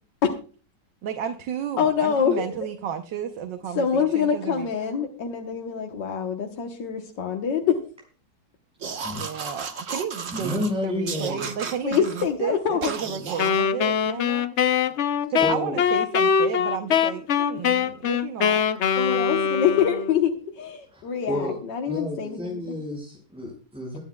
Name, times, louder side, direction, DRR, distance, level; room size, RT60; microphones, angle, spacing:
voice 1, 1.0-4.7 9.1-14.5 15.3-18.7, right 8 dB, 85° right, 6 dB, 1.6 m, -32 dB
voice 2, 1.8-2.5 3.8-7.8 11.8-12.9 19.0-22.8, left 7 dB, 85° left, 2 dB, 1.9 m, -25 dB
sound 1, 8.8-10.7 11.1-12.3 12.8-13.6, right 5 dB, 50° right, 1.5 m, -34 dB
voice 3, 10.3-11.5 15.4-15.8 20.9-21.0 21.3-21.5 21.9-24.0, left 1 dB, 5° right, -4 dB, 5.2 m, -30 dB
Wind instrument woodwind instrument, 13.4-20.2, left 7 dB, 60° left, 0.8 m, -23 dB
23.5 x 9.6 x 2.3 m, 0.37 s
omnidirectional pair, 1.9 m